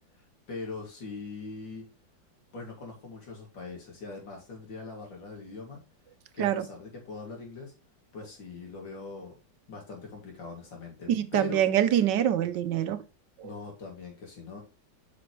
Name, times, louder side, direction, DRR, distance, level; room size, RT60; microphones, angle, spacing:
voice 1, 0.0-1.9 2.5-5.8 6.3-7.7 8.1-9.4 9.7-11.6 13.4-14.6, left 3 dB, 75° left, 3.5 m, -41 dB
voice 2, 11.1-13.0 13.4-13.5, right 11 dB, 75° right, 1.3 m, -25 dB
8.3 x 6.0 x 3.2 m
omnidirectional pair, 2.0 m